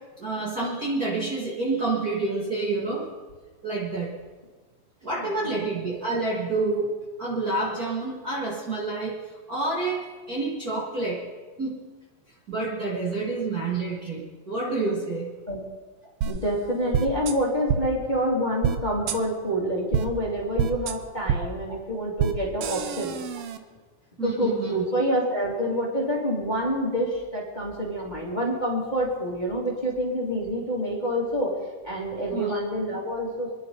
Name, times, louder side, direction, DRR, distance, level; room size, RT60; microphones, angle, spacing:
voice 1, 0.2-3.1 3.6-4.1 5.0-6.9 7.2-9.2 9.5-11.2 11.6-11.8 12.5-15.3 21.4-21.5 24.2-24.8 32.3-32.6, right 3 dB, 35° right, -6 dB, 2.2 m, -28 dB
voice 2, 5.2-5.6 15.5-15.6 16.2-23.1 24.2-31.5 31.8-33.5, equal, 15° left, -4 dB, 2.6 m, -27 dB
sound 1, 16.2-16.3 16.9-17.3 17.7-17.8 18.6-18.8 19.1-19.2 19.9-20.0 20.6-20.9 21.3-21.4 22.2-22.3 22.6-23.6, right 8 dB, 70° right, 1.5 m, -25 dB
27.0 x 11.0 x 4.0 m, 1.4 s
omnidirectional pair, 3.5 m